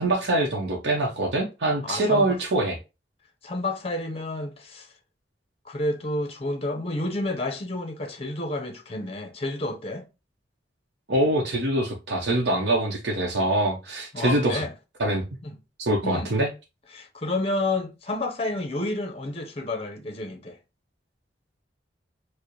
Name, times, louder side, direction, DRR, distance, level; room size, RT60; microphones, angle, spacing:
voice 1, 0.0-2.8 11.1-14.6 15.0-15.2 15.8-16.5, right 1 dB, 70° right, 0.7 m, -24 dB
voice 2, 1.8-2.4 3.4-4.9 5.6-10.1 14.1-14.7 15.4-15.6 16.0-16.3 16.9-20.6, left 2 dB, 35° left, 0.7 m, -30 dB
4.6 x 2.1 x 3.0 m
head